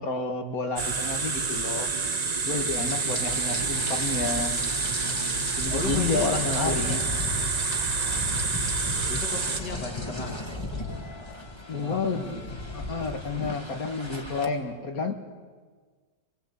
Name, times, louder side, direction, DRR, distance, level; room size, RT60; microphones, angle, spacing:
voice 1, 0.0-1.9 2.4-4.6 5.6-7.0 11.7-12.4 12.7-15.1, left 3 dB, 55° left, 6 dB, 2.2 m, -30 dB
sound 1, 0.8-9.6, right 4 dB, 30° right, 0.8 m, -28 dB
Rain, 2.7-14.5, left 2 dB, 15° left, 2.0 m, -35 dB
voice 2, 3.4-4.0 5.3-7.0 9.1-10.4 10.9-11.0 11.7-12.5, left 2 dB, 70° left, 1 dB, 2.8 m, -37 dB
25.0 x 21.0 x 8.3 m, 1.5 s
omnidirectional pair, 1.9 m